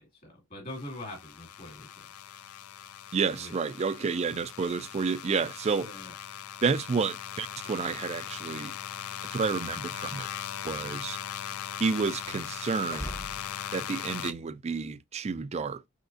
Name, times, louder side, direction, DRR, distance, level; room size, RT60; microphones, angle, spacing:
voice 1, 0.0-2.1 3.3-3.6 4.0-4.1 5.8-6.1 14.7-14.8, left 1 dB, 40° left, 2.1 m, -43 dB
sound 1, 0.7-14.3, left 10 dB, 80° left, 0.4 m, -39 dB
voice 2, 3.1-5.9 6.6-8.7 9.3-10.3 10.6-11.2 11.8-13.1 13.7-15.8, right 5 dB, 30° right, 0.3 m, -30 dB
sound 2, 9.8-13.6, equal, 10° left, 0.7 m, -45 dB
5.4 x 3.2 x 2.6 m
head